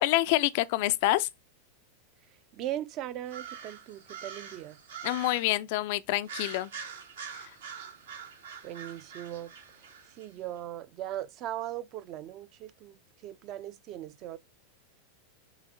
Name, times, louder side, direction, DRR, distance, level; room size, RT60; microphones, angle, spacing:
voice 1, 0.0-1.3 5.0-6.7 7.4-7.5, left 17 dB, 50° left, 0.4 m, -27 dB
voice 2, 2.5-4.8 8.6-9.9 10.2-14.4, right 12 dB, 40° right, 0.6 m, -39 dB
sound 1, 3.3-5.6 6.2-10.3, right 7 dB, 70° right, 1.4 m, -44 dB
6.2 x 4.2 x 3.8 m
figure-of-eight pair, 90°, 0 cm